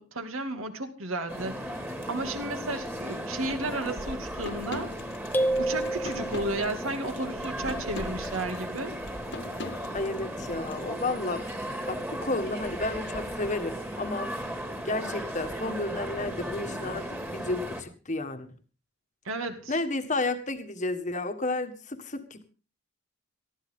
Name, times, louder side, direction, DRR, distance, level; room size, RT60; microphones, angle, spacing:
voice 1, 0.0-1.7 2.1-4.9 5.6-8.9 19.2-19.7, right 2 dB, 65° right, 6 dB, 2.5 m, -33 dB
sound 1, 1.3-17.8, equal, 10° right, 2.3 m, -36 dB
sound 2, 4.4-10.8, left 2 dB, 55° left, 1.6 m, -42 dB
sound 3, 5.3-6.9, right 1 dB, 10° left, 0.9 m, -29 dB
voice 2, 9.9-11.4 11.9-14.3 14.8-18.5 19.7-22.4, left 2 dB, 35° left, 7 dB, 1.6 m, -32 dB
19.0 x 14.5 x 3.7 m, 0.35 s
head